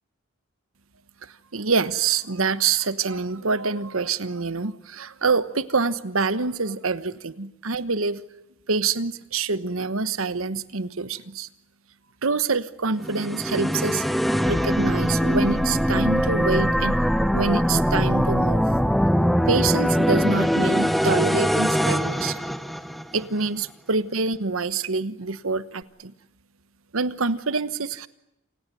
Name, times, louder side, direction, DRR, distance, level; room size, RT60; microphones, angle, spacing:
voice 1, 1.2-8.2 8.7-11.5 12.2-14.0 14.5-17.0 17.3-18.6 19.5-22.4 23.1-26.1 26.9-28.1, right 4 dB, 80° right, 14 dB, 1.2 m, -26 dB
sound 1, 13.0-23.2, equal, ahead, 0.9 m, -22 dB
28.5 x 18.5 x 9.2 m, 0.89 s
head